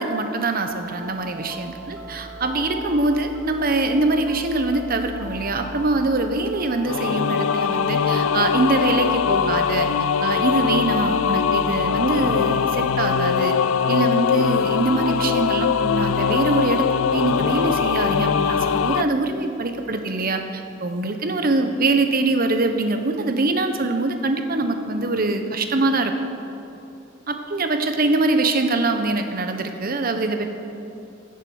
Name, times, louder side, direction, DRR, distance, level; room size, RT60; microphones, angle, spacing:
voice 1, 0.0-9.9 10.2-13.5 13.9-26.1 27.3-30.5, right 2 dB, 45° right, 6 dB, 1.0 m, -23 dB
sound 1, 0.6-19.0, right 1 dB, 85° right, 1.4 m, -38 dB
sound 2, 6.8-19.0, left 7 dB, 90° left, 0.4 m, -21 dB
16.5 x 7.4 x 6.4 m, 2.8 s
head